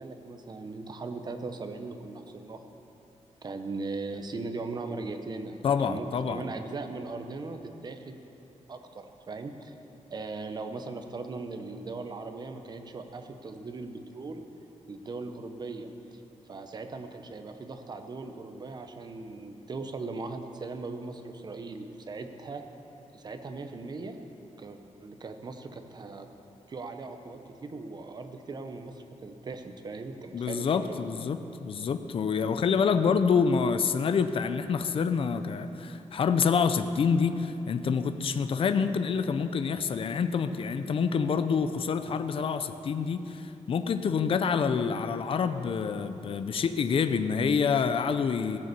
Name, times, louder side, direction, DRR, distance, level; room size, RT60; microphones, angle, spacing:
voice 1, 0.0-2.6 3.4-8.2 8.7-9.7 10.1-14.5 14.9-16.2 16.5-22.6 23.1-24.2 24.6-26.3 26.7-31.0, right 3 dB, 35° right, 6 dB, 0.8 m, -39 dB
voice 2, 5.6-6.4 30.3-48.6, left 6 dB, 45° left, 10 dB, 0.5 m, -27 dB
16.0 x 6.7 x 6.8 m, 3.0 s
wide cardioid pair, 160°, 13 cm